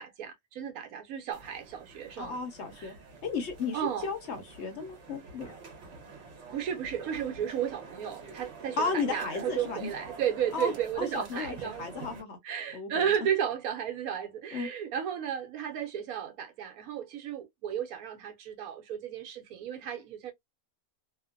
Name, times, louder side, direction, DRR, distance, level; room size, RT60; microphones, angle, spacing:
voice 1, 0.0-2.4 2.8-3.0 3.7-4.1 6.5-12.1 12.4-20.3, right 9 dB, 80° right, 1.1 m, -33 dB
sound 1, 1.3-12.2, right 4 dB, 55° right, 1.1 m, -47 dB
voice 2, 2.2-2.9 3.2-5.5 8.8-9.9 10.5-10.7 11.0-12.4 12.7-12.9 14.5-14.7, left 4 dB, 55° left, 0.9 m, -34 dB
2.9 x 2.0 x 2.4 m
omnidirectional pair, 1.5 m